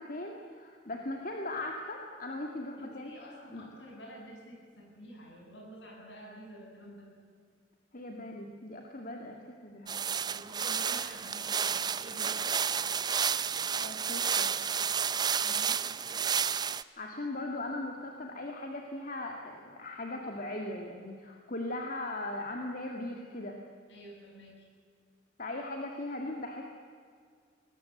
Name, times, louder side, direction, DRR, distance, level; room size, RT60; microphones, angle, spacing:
voice 1, 0.0-3.7 7.9-10.0 13.8-14.5 17.0-23.6 25.4-26.7, left 2 dB, 45° left, 2 dB, 2.0 m, -39 dB
voice 2, 2.8-7.1 10.2-12.5 15.3-15.9 23.9-24.7, equal, 70° left, -1 dB, 7.5 m, -49 dB
sound 1, 9.9-16.8, right 7 dB, 25° right, 0.5 m, -31 dB
23.0 x 19.5 x 8.0 m, 2.1 s
head